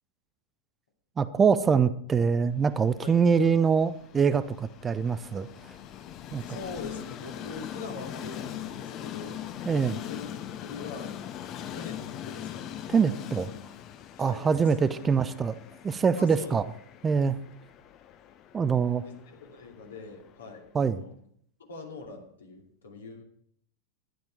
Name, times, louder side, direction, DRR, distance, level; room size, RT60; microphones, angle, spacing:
voice 1, 1.2-5.5 6.3-6.4 9.7-10.0 12.9-13.5 14.2-15.6 15.8-16.6 17.0-17.4 18.5-19.0 20.7-21.0, right 6 dB, 20° right, 14 dB, 0.5 m, -24 dB
Train, 2.6-20.7, left 10 dB, 35° left, 0.8 m, -42 dB
voice 2, 6.4-9.5 9.9-11.1 11.4-12.7 14.2-14.8 16.2-16.6 19.0-21.1 21.7-23.2, left 4 dB, 70° left, 1 dB, 2.6 m, -43 dB
11.5 x 10.5 x 4.6 m, 0.65 s
figure-of-eight pair, 90°, 0 cm